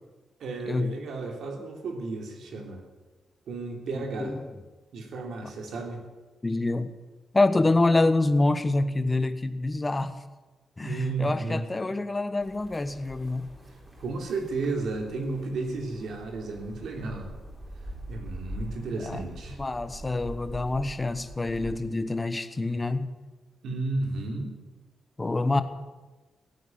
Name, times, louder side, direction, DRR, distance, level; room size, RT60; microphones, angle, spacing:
voice 1, 0.4-2.8 3.5-4.3 4.9-6.0 10.8-11.6 14.0-17.3 18.1-19.6 23.6-24.5, right 3 dB, 80° right, 2 dB, 3.3 m, -33 dB
voice 2, 3.9-4.5 6.4-6.9 7.3-10.2 10.8-13.5 19.0-19.3 19.6-23.1 24.1-24.2 25.2-25.6, left 2 dB, 20° left, 11 dB, 1.1 m, -26 dB
sound 1, 12.4-21.7, right 1 dB, 20° right, 3.9 m, -43 dB
16.0 x 9.2 x 9.6 m, 1.2 s
cardioid pair, 115°, 0 cm